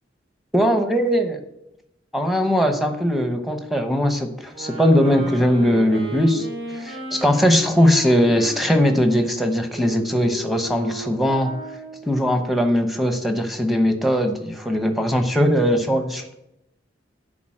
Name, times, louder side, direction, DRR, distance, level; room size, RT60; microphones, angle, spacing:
voice 1, 0.5-1.4 2.1-6.5 6.7-11.5 12.0-16.4, equal, ahead, 5 dB, 0.9 m, -20 dB
sound 1, 4.5-12.1, equal, 35° right, 4.2 m, -35 dB
11.0 x 3.9 x 7.6 m, 0.86 s
head